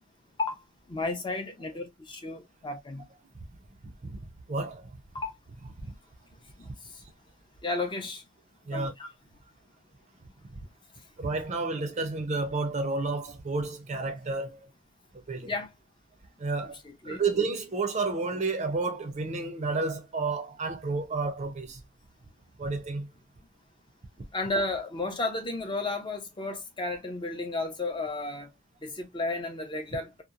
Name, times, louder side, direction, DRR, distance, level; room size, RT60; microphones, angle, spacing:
voice 1, 0.9-3.1 5.1-5.4 6.6-7.0 7.6-8.2 8.7-9.1 15.4-15.7 16.6-16.7 17.0-17.2 24.3-28.5 28.8-30.2, left 2 dB, 20° left, 0.5 m, -33 dB
voice 2, 4.5-4.9 6.7-6.8 8.7-8.9 11.2-14.7 15.3-15.5 16.4-16.8 17.0-21.8 22.6-23.1, right 3 dB, 35° right, 0.5 m, -31 dB
2.8 x 2.0 x 2.3 m
head